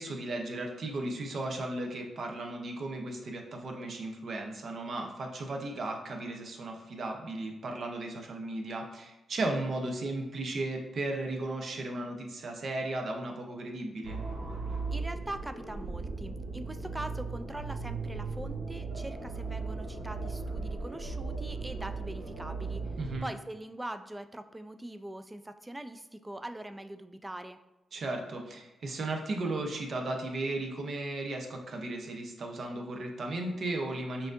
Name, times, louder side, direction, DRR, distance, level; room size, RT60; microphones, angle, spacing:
voice 1, 0.0-14.2 23.0-23.3 27.9-34.3, right 2 dB, 60° right, 2 dB, 0.7 m, -35 dB
sound 1, 14.0-23.2, right 4 dB, 90° right, 0.9 m, -37 dB
voice 2, 14.9-22.8 23.2-27.6, right 1 dB, 15° right, 9 dB, 0.3 m, -42 dB
5.7 x 2.7 x 2.5 m, 1.0 s
cardioid pair, 80°, 0 cm